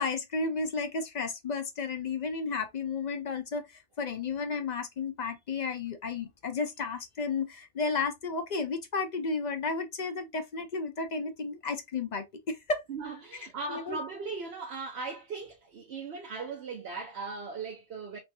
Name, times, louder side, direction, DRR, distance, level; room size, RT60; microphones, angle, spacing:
voice 1, 0.0-3.6 4.0-12.8 13.7-14.0, left 4 dB, 50° left, 0.6 m, -33 dB
voice 2, 12.9-18.2, right 4 dB, 70° right, 1.0 m, -38 dB
3.3 x 3.2 x 2.7 m
omnidirectional pair, 1.1 m